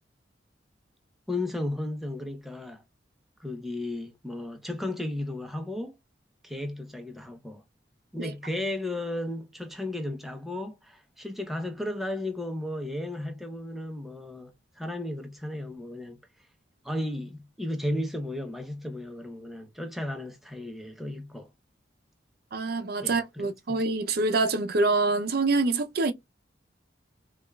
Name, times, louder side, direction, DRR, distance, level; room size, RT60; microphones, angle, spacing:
voice 1, 1.3-2.8 3.4-5.9 6.4-7.6 8.1-16.2 16.8-21.5 23.0-23.8, left 1 dB, ahead, 0.6 m, -34 dB
voice 2, 22.5-26.1, right 3 dB, 55° right, 0.5 m, -26 dB
5.0 x 2.3 x 2.2 m
head